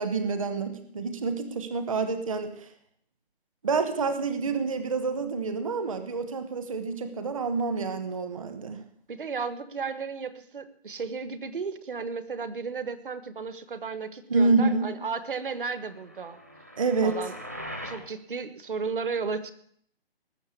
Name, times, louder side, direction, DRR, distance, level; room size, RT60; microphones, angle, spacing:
voice 1, 0.0-2.7 3.6-8.8 14.3-14.9 16.8-17.2, right 4 dB, 35° right, 10 dB, 1.1 m, -27 dB
voice 2, 9.1-16.4 17.0-17.4 17.8-19.5, right 5 dB, 55° right, 13 dB, 1.5 m, -34 dB
sound 1, 15.8-18.1, equal, 15° right, 0.6 m, -41 dB
19.0 x 7.1 x 8.3 m, 0.64 s
hypercardioid pair, 170°, 31 cm